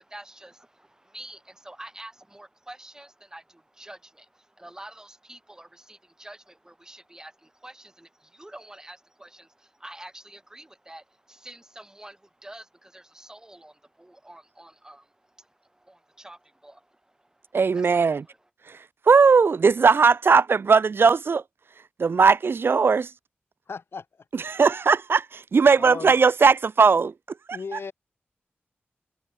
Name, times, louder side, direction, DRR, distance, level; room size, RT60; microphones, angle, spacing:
voice 1, 0.0-18.4, right 1 dB, 15° right, 5.1 m, -47 dB
voice 2, 17.5-18.2 19.1-21.4 22.0-23.1 24.5-27.1, right 5 dB, 65° right, 0.6 m, -18 dB
voice 3, 23.7-24.5 25.8-26.1 27.5-27.9, left 5 dB, 75° left, 5.8 m, -37 dB
wide cardioid pair, 90°, 4 cm